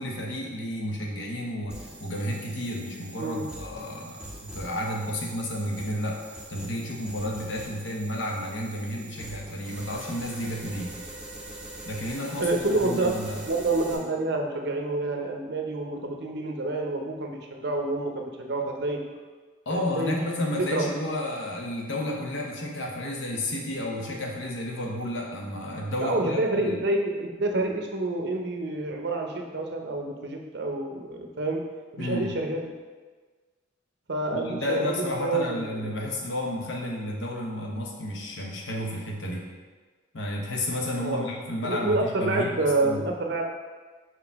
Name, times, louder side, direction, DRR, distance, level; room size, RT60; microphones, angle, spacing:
voice 1, 0.0-6.2 6.5-10.9 11.9-13.4 19.7-26.8 32.0-32.3 34.3-39.4 40.1-43.1, left 1 dB, 65° left, -1 dB, 1.0 m, -32 dB
sound 1, 1.7-14.0, right 1 dB, 5° right, 0.7 m, -43 dB
voice 2, 12.4-13.1 13.5-19.0 19.7-20.9 26.0-31.6 31.9-32.7 34.1-35.9 41.0-41.3 41.6-43.4, right 2 dB, 55° right, 2 dB, 0.7 m, -28 dB
5.6 x 4.9 x 3.5 m, 1.4 s
head